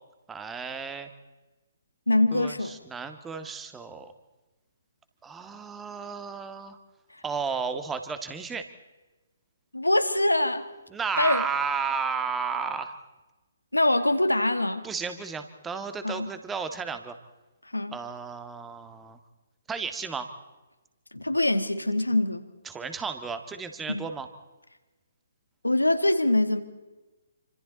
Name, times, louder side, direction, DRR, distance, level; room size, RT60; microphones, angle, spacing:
voice 1, 0.3-1.1 2.3-4.1 5.2-6.8 7.2-8.6 10.9-13.0 14.8-17.2 17.9-19.2 19.7-20.3 22.6-24.3, right 5 dB, 10° right, 8 dB, 1.7 m, -33 dB
voice 2, 2.1-2.8 9.7-10.7 11.2-11.4 13.7-14.8 16.0-16.3 17.7-18.0 21.1-22.5 23.9-24.1 25.6-26.6, left 1 dB, 90° left, 9 dB, 2.0 m, -24 dB
27.5 x 26.0 x 4.1 m, 1.1 s
figure-of-eight pair, 135°, 0 cm